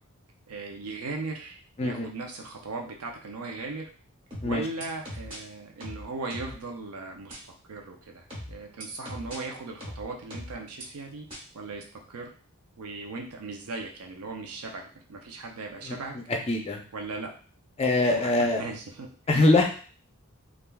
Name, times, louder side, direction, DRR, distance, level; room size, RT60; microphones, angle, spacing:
voice 1, 0.5-3.9 4.4-7.3 7.7-11.3 11.5-12.3 12.8-14.8 15.1-16.1 16.9-17.3 18.0-19.1 19.3-19.5, right 3 dB, 90° right, 2 dB, 0.5 m, -38 dB
voice 2, 1.8-2.1 4.4-4.7 15.8-16.0 16.3-16.8 17.8-18.6 19.3-19.7, left 2 dB, 30° left, 2 dB, 0.4 m, -23 dB
sound 1, 4.3-5.4 5.8-6.6 7.3-7.4 8.3-9.4 9.8-10.8 11.3-11.4, equal, 25° right, 1.0 m, -40 dB
3.2 x 2.4 x 2.2 m, 0.41 s
head